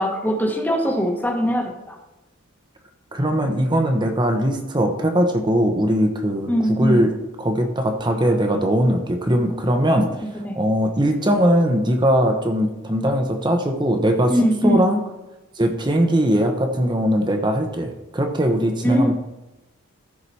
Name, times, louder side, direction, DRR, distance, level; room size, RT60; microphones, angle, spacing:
voice 1, 0.0-2.0 6.5-7.0 10.2-10.6 14.3-14.8 18.8-19.1, equal, 10° left, 1 dB, 1.2 m, -21 dB
voice 2, 3.1-10.2 10.6-15.0 15.6-19.1, equal, 20° right, 4 dB, 0.9 m, -20 dB
14.5 x 4.8 x 4.2 m, 1.0 s
head